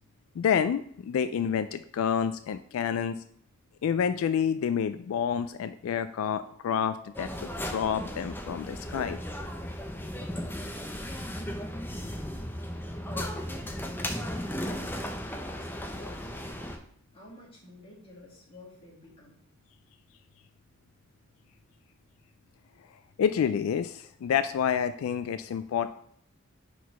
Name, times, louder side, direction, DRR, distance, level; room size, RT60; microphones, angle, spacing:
voice 1, 0.4-3.2 3.8-9.2 23.2-25.9, left 7 dB, 85° left, 11 dB, 0.3 m, -28 dB
sound 1, 7.1-16.8, equal, 10° left, 0.6 m, -36 dB
voice 2, 13.0-15.1 15.5-16.7 17.1-19.4, left 1 dB, 25° left, -6 dB, 2.4 m, -51 dB
4.6 x 4.1 x 5.4 m, 0.66 s
head